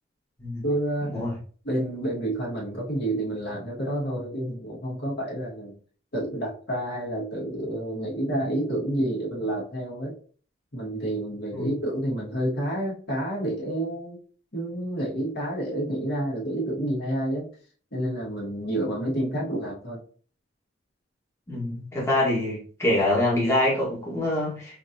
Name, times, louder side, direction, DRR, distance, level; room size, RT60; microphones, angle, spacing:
voice 1, 0.6-1.2 1.6-5.8 6.1-10.2 10.7-14.2 14.5-17.5 17.9-20.0 22.0-22.1, right 1 dB, 55° left, -4 dB, 1.7 m, -29 dB
voice 2, 21.5-24.8, left 1 dB, 15° left, -6 dB, 1.3 m, -25 dB
5.1 x 2.9 x 2.6 m, 0.42 s
head